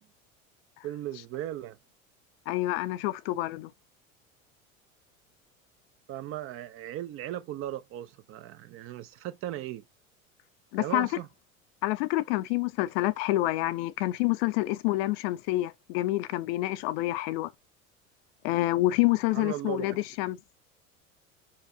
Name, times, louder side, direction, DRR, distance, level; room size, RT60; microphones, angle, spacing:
voice 1, 0.8-1.8 6.1-9.8 10.8-11.3 19.3-19.9, right 13 dB, 35° right, 0.7 m, -37 dB
voice 2, 2.5-3.7 10.7-11.1 11.8-17.5 18.4-20.4, left 17 dB, 45° left, 0.6 m, -27 dB
5.6 x 4.7 x 4.2 m
figure-of-eight pair, 75°, 41 cm